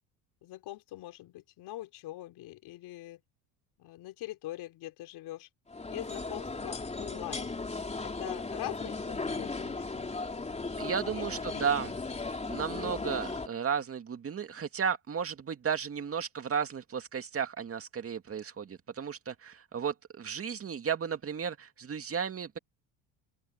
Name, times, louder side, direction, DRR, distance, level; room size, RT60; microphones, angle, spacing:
voice 1, 0.4-3.2 3.8-5.5 5.9-7.5 8.0-10.1 11.1-11.3 11.5-11.9, left 16 dB, 70° left, 4.4 m, -43 dB
sound 1, 5.7-13.5, left 3 dB, 15° left, 3.5 m, -36 dB
voice 2, 10.8-11.9 12.5-22.6, right 7 dB, 35° right, 2.3 m, -34 dB
open air
cardioid pair, 105°, 41 cm